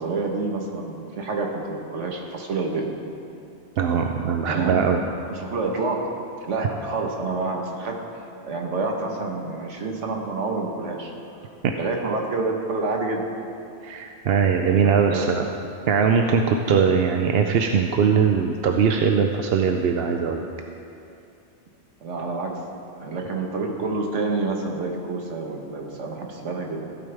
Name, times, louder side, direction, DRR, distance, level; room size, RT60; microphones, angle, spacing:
voice 1, 0.0-2.9 4.5-4.8 5.3-6.1 6.5-11.1 11.7-13.2 14.7-15.3 22.0-22.6 23.0-26.8, right 3 dB, 80° right, 1 dB, 1.5 m, -28 dB
voice 2, 3.8-5.0 6.6-6.7 13.8-15.4 15.9-20.5, right 6 dB, 65° right, 4 dB, 0.7 m, -21 dB
15.5 x 8.8 x 3.4 m, 2.6 s
omnidirectional pair, 1.2 m